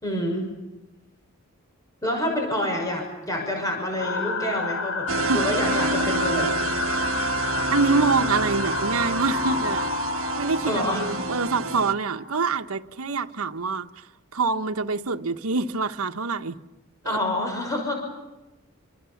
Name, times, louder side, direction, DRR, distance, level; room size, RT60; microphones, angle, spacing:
voice 1, 0.0-0.5 2.0-5.1 5.3-6.5 10.6-11.2 17.0-17.9, left 1 dB, 15° left, 6.1 m, -27 dB
sound 1, 4.0-12.5, left 4 dB, 75° left, 3.3 m, -30 dB
sound 2, 5.1-11.9, right 3 dB, 70° right, 1.3 m, -28 dB
voice 2, 7.7-9.9 10.3-14.1 14.3-16.6 17.0-17.2, right 4 dB, 85° right, 1.1 m, -25 dB
27.0 x 26.5 x 7.2 m
head